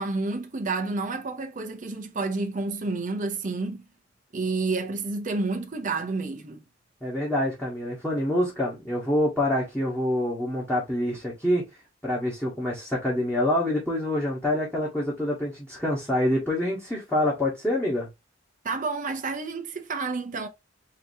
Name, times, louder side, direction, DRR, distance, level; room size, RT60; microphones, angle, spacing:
voice 1, 0.0-3.8 4.3-6.6 18.6-20.5, right 3 dB, 40° right, 0.7 m, -30 dB
voice 2, 7.0-11.6 12.0-18.1, left 1 dB, 5° left, 1.4 m, -26 dB
4.7 x 2.9 x 2.7 m
head